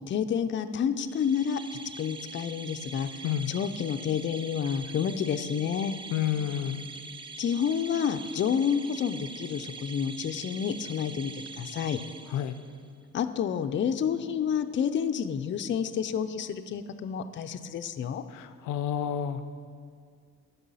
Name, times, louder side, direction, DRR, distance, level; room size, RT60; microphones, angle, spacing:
voice 1, 0.1-1.6 2.0-3.1 3.5-5.9 7.4-11.3 11.6-12.0 13.1-18.2, left 7 dB, 40° left, 9 dB, 0.5 m, -29 dB
sound 1, 1.0-12.9, right 4 dB, 15° right, 0.4 m, -44 dB
voice 2, 6.1-6.8 12.3-12.5 18.3-19.4, left 10 dB, 90° left, 11 dB, 0.5 m, -30 dB
11.0 x 5.5 x 5.6 m, 2.2 s
cardioid pair, 90°, 30 cm